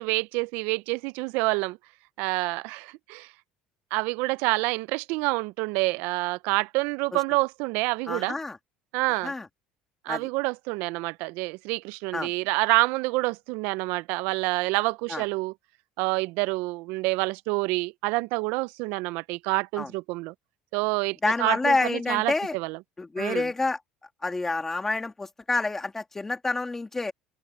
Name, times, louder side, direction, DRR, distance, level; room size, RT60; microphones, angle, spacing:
voice 1, 0.0-1.8 2.2-3.3 3.9-8.4 8.9-9.3 10.0-15.5 16.0-20.3 20.7-22.8 23.2-23.5, right 24 dB, 70° right, 0.3 m, -27 dB
voice 2, 8.1-8.6 9.2-9.5 10.1-10.3 12.1-12.3 15.1-15.2 19.8-19.9 21.2-22.6 23.0-23.8 24.2-27.1, left 3 dB, 10° left, 1.9 m, -28 dB
open air
cardioid pair, 170°, 3 cm